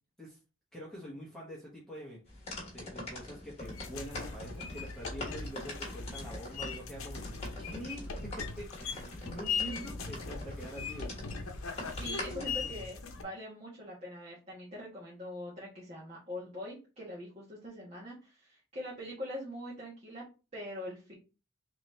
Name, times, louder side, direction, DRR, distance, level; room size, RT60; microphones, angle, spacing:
voice 1, 0.7-11.2 12.4-12.8, equal, ahead, -6 dB, 1.1 m, -46 dB
sound 1, 2.3-12.7, left 2 dB, 30° left, 1.4 m, -45 dB
sound 2, 3.6-13.2, left 5 dB, 80° left, 0.7 m, -40 dB
voice 2, 9.5-9.9 12.0-20.2 20.5-21.1, equal, 30° right, -5 dB, 1.2 m, -43 dB
3.9 x 3.0 x 3.1 m, 0.32 s
head